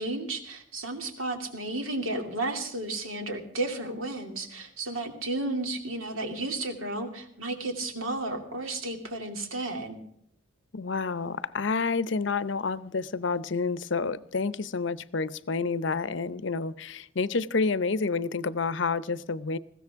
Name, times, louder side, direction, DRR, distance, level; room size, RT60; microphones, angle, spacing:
voice 1, 0.0-10.0, right 2 dB, 85° right, 2.7 m, -33 dB
voice 2, 10.7-19.6, left 4 dB, 65° left, 0.7 m, -29 dB
20.5 x 15.5 x 3.6 m
head